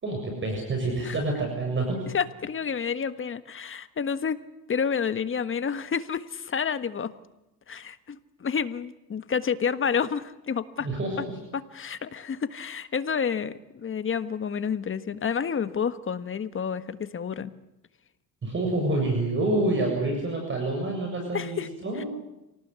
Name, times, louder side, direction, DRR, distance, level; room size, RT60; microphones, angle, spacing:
voice 1, 0.0-2.0 10.8-11.4 18.4-22.1, right 2 dB, 30° right, 2 dB, 7.3 m, -27 dB
voice 2, 2.1-4.4 4.7-7.1 7.7-10.9 11.5-17.5 21.3-22.0, left 6 dB, 35° left, 12 dB, 1.5 m, -29 dB
28.0 x 18.5 x 8.3 m, 0.94 s
cardioid pair, 110°, 36 cm